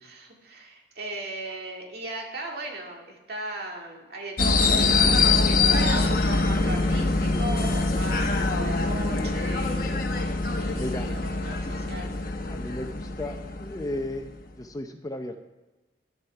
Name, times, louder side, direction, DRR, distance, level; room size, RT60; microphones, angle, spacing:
voice 1, 0.0-12.2, right 2 dB, 60° right, 0 dB, 2.1 m, -38 dB
sound 1, 4.4-14.3, left 3 dB, 55° left, 1.0 m, -24 dB
voice 2, 10.7-11.1 11.6-11.8 12.5-14.2 14.6-15.4, left 1 dB, 20° left, 6 dB, 0.6 m, -34 dB
10.5 x 8.1 x 5.6 m, 1.1 s
head